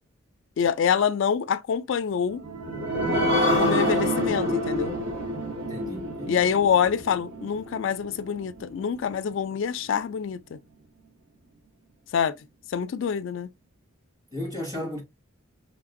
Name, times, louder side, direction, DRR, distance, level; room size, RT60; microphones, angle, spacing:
voice 1, 0.6-2.4 3.6-5.0 6.3-10.6 12.1-12.3 12.7-13.5, left 7 dB, 60° left, 0.3 m, -26 dB
sound 1, 2.3-9.4 9.8-9.9 10.3-10.4, equal, 80° right, 1.6 m, -28 dB
voice 2, 5.7-6.4 14.3-15.0, left 1 dB, 20° right, 2.1 m, -34 dB
5.7 x 3.2 x 2.5 m
head